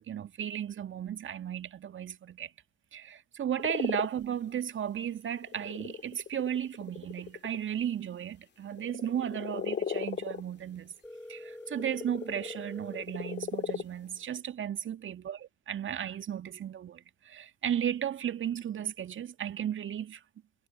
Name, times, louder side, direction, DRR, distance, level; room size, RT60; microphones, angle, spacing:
voice 1, 0.0-2.5 2.9-10.9 11.3-15.4 15.7-20.2, right 9 dB, 40° right, 2.0 m, -35 dB
sound 1, 3.6-4.1 4.6-4.7 5.4-7.6 8.7-10.5 11.6-13.8, left 7 dB, 35° left, 2.1 m, -36 dB
Telephone, 11.0-13.0, left 1 dB, 5° left, 4.3 m, -45 dB
figure-of-eight pair, 50°, 32 cm